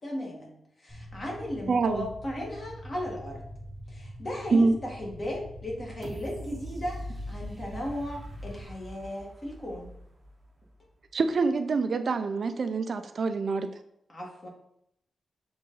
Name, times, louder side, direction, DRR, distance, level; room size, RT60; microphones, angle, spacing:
voice 1, 0.0-3.4 3.9-9.9 14.1-14.5, left 1 dB, 35° left, -1 dB, 1.7 m, -36 dB
sound 1, 0.9-8.6, equal, 15° left, 2.0 m, -44 dB
voice 2, 1.7-2.1 4.5-4.7 11.1-13.7, right 4 dB, 50° right, 9 dB, 0.4 m, -25 dB
sound 2, 6.0-10.9 11.4-11.5, equal, 20° right, 0.8 m, -42 dB
6.6 x 3.9 x 3.9 m, 0.75 s
wide cardioid pair, 155°, 0 cm